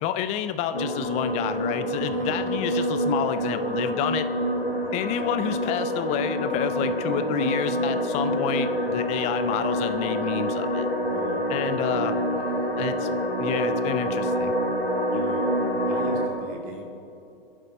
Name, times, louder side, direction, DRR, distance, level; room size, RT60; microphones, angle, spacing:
voice 1, 0.0-4.3 4.9-10.9 11.5-12.2 12.8-13.1 13.4-14.6, left 10 dB, 25° left, 11 dB, 0.7 m, -29 dB
sound 1, 0.7-16.3, equal, 85° left, 2.2 m, -26 dB
voice 2, 11.1-11.5 12.2-12.8 15.1-16.8, right 4 dB, 30° right, 1 dB, 2.6 m, -39 dB
26.0 x 11.0 x 4.2 m, 2.7 s
figure-of-eight pair, 110°, 29 cm